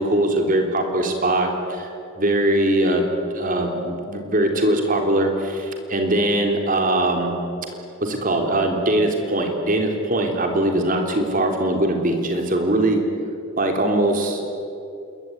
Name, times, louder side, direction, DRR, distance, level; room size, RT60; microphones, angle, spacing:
voice 1, 0.0-1.9 2.2-3.0 3.3-7.3 8.0-13.0 13.6-14.4, right 1 dB, 40° right, 3 dB, 3.7 m, -21 dB
27.0 x 22.0 x 9.5 m, 2.7 s
head